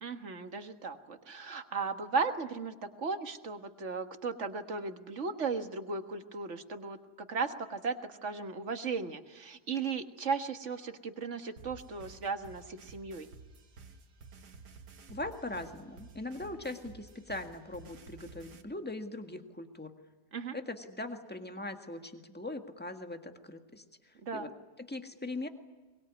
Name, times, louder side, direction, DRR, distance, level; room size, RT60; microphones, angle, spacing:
voice 1, 0.0-13.3 20.3-20.6 24.2-24.5, right 4 dB, 50° right, 7 dB, 1.8 m, -36 dB
sound 1, 11.6-18.6, right 4 dB, 85° right, 2.0 m, -52 dB
voice 2, 15.1-19.9 20.5-24.5 24.9-25.5, left 2 dB, 5° left, 6 dB, 1.6 m, -41 dB
23.0 x 21.5 x 9.5 m, 1.2 s
omnidirectional pair, 1.7 m